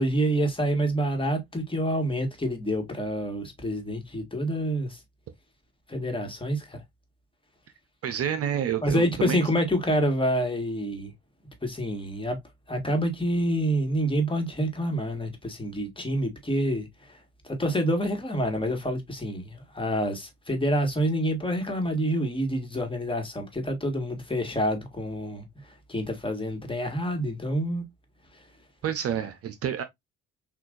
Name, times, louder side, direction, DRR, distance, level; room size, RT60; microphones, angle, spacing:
voice 1, 0.0-5.0 5.9-6.8 8.8-11.1 11.6-12.4 12.7-27.8 28.3-28.5, equal, 15° left, 1.7 m, -27 dB
voice 2, 8.0-9.4 28.8-29.8, right 9 dB, 45° right, 0.7 m, -29 dB
5.9 x 2.6 x 2.5 m
hypercardioid pair, 60°, 32 cm